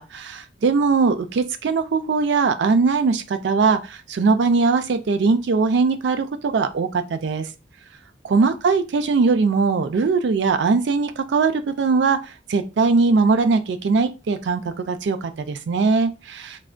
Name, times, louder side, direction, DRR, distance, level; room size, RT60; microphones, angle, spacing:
voice 1, 0.0-7.5 8.2-12.2 12.5-16.6, right 4 dB, 75° right, 10 dB, 0.4 m, -20 dB
3.3 x 2.1 x 2.4 m, 0.29 s
head